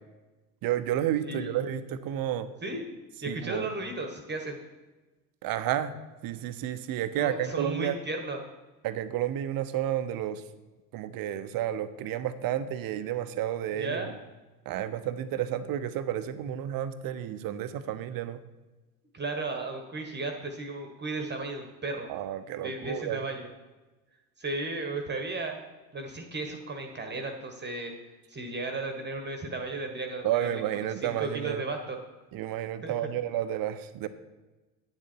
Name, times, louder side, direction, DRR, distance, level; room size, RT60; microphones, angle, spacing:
voice 1, 0.6-2.5 3.3-3.7 5.4-5.9 6.2-8.0 8.8-10.4 10.9-14.1 14.7-18.4 22.1-23.2 30.2-31.6 32.3-34.1, right 11 dB, 45° right, 12 dB, 0.8 m, -31 dB
voice 2, 1.2-1.6 2.6-2.8 3.2-4.6 7.1-8.4 13.8-14.1 19.1-22.1 22.6-23.5 24.4-25.6 25.9-27.9 28.3-30.6 31.0-32.0 32.8-32.9, right 2 dB, 20° right, 4 dB, 1.3 m, -35 dB
9.6 x 7.4 x 4.5 m, 1.2 s
hypercardioid pair, 70°, 50 cm